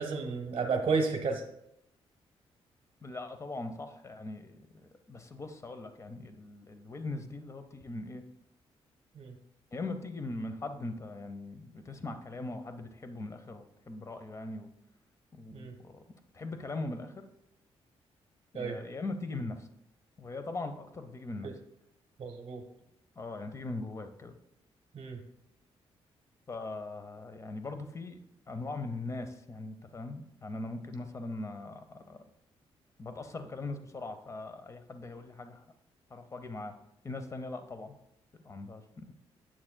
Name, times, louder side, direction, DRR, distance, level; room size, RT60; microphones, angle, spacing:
voice 1, 0.0-1.4 9.2-9.3 15.5-15.7 18.5-18.8 21.4-21.5 22.2-22.6 24.9-25.2, right 4 dB, 55° right, 3 dB, 0.9 m, -32 dB
voice 2, 3.0-4.6 5.1-8.2 9.7-14.7 15.3-16.0 16.3-17.2 18.5-19.7 20.2-21.5 23.2-24.3 26.5-28.2 28.5-32.2 33.0-35.6 36.1-36.7 37.0-37.9 38.4-39.1, left 2 dB, 30° left, 8 dB, 0.7 m, -40 dB
8.7 x 7.5 x 2.2 m, 0.79 s
cardioid pair, 95°, 11 cm